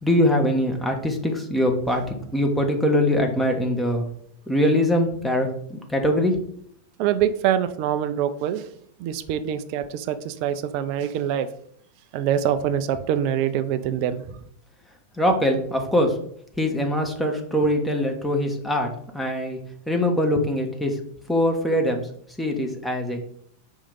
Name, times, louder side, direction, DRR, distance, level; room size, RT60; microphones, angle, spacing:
voice 1, 0.0-4.1 4.5-6.3 15.2-16.1 16.6-19.6 19.9-21.0 21.3-22.0 22.4-23.2, left 1 dB, 5° left, 1.1 m, -22 dB
voice 2, 7.0-8.6 9.0-11.5 12.1-14.4, right 9 dB, 45° right, 0.5 m, -24 dB
4.9 x 3.6 x 5.3 m
figure-of-eight pair, 90°, 0 cm